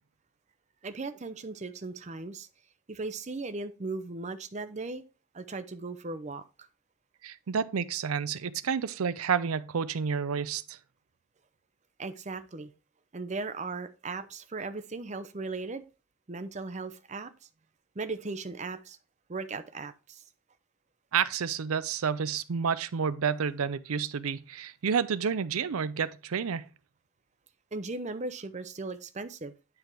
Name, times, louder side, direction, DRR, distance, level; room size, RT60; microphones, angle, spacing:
voice 1, 0.8-2.5 2.9-5.0 5.3-6.4 12.0-12.7 13.1-15.8 16.3-17.5 18.0-19.0 19.3-20.2 27.7-29.5, right 3 dB, 30° right, 0.6 m, -37 dB
voice 2, 7.2-10.8 21.1-26.7, right 6 dB, 80° right, 0.5 m, -30 dB
9.7 x 3.5 x 4.5 m
head